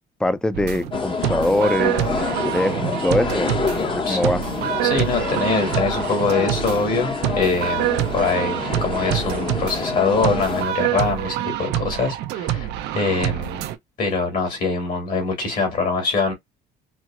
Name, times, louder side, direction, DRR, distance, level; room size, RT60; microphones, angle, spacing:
voice 1, 0.2-3.6 3.9-4.4, left 1 dB, 5° left, 0.4 m, -23 dB
sound 1, 0.5-13.7, right 13 dB, 85° right, 0.5 m, -26 dB
sound 2, 0.9-10.6, left 4 dB, 30° left, 0.8 m, -27 dB
voice 2, 4.8-12.7 12.9-13.6 14.0-16.3, left 4 dB, 55° left, 2.1 m, -23 dB
4.5 x 2.0 x 2.3 m
cardioid pair, 110°, 17 cm